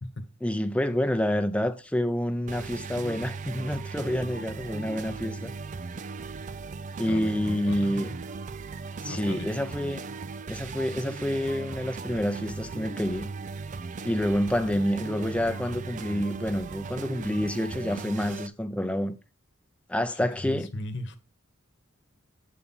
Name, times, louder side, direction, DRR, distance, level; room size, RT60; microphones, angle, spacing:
voice 1, 0.4-5.5 7.0-8.1 9.0-10.0 10.5-13.3 14.0-19.2 19.9-20.7, equal, 5° left, 0.6 m, -28 dB
sound 1, 2.5-18.5, right 4 dB, 35° right, 0.4 m, -38 dB
voice 2, 7.1-8.2 9.1-9.5 14.0-14.1 20.1-21.2, left 1 dB, 55° left, 1.1 m, -37 dB
8.5 x 4.2 x 5.4 m
head